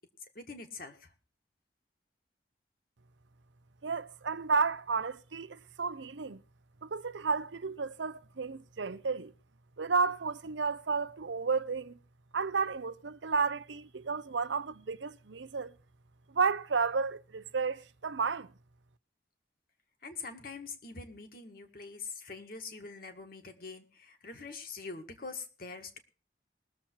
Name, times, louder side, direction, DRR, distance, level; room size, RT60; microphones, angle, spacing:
voice 1, 0.4-1.1 20.0-26.0, left 4 dB, 50° left, 1.8 m, -44 dB
voice 2, 3.8-6.4 6.8-9.3 9.8-12.0 12.3-15.7 16.3-18.5, right 5 dB, 85° right, 0.7 m, -32 dB
20.0 x 7.3 x 4.5 m
head